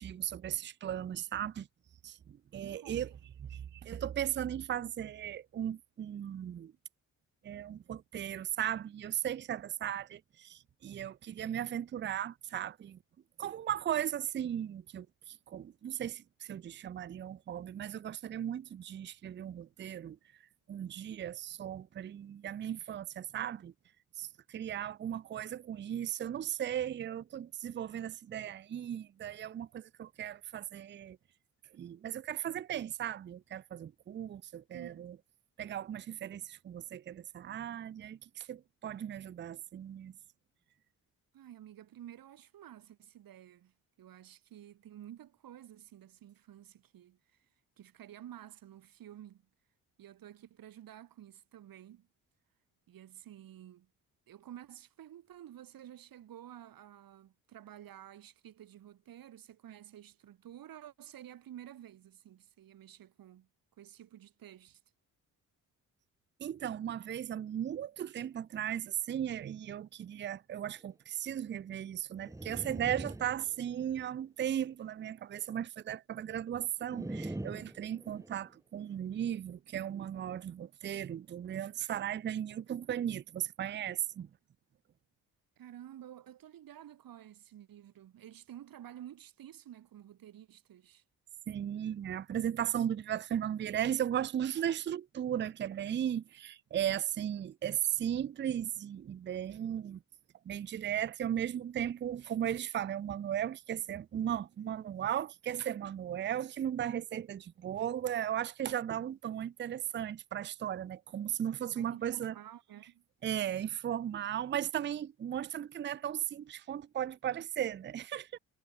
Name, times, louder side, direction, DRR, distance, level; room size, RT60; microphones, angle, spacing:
voice 1, 0.0-1.7 2.0-3.1 3.5-6.7 7.4-13.0 13.4-20.2 20.7-23.7 24.2-31.2 31.7-35.2 35.6-40.1 66.4-84.3 91.5-100.0 100.5-112.3 113.2-118.4, right 10 dB, 35° right, 0.4 m, -36 dB
voice 2, 2.6-3.1 34.7-35.1 41.3-47.5 47.8-49.4 50.0-52.1 52.9-53.9 54.3-63.5 63.8-64.8 85.6-91.0 109.2-109.3 111.7-113.0, right 11 dB, 80° right, 6.2 m, -51 dB
sound 1, 72.2-74.1 76.9-78.5, right 2 dB, 10° right, 1.8 m, -43 dB
cardioid pair, 115°, 34 cm